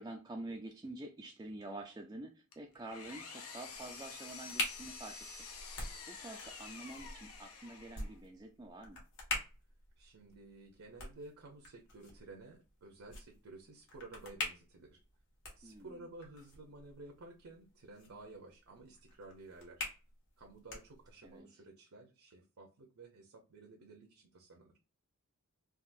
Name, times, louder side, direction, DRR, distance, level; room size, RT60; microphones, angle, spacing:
voice 1, 0.0-5.5 6.1-9.0 15.6-16.1 21.2-21.6, right 2 dB, 15° right, 0.3 m, -48 dB
Engine, 2.5-8.2, left 5 dB, 75° left, 0.8 m, -49 dB
sound 1, 3.7-21.4, left 2 dB, 55° left, 1.5 m, -46 dB
voice 2, 10.0-15.0 15.6-19.8 20.4-24.7, right 2 dB, 70° right, 0.7 m, -53 dB
3.6 x 2.4 x 2.6 m
head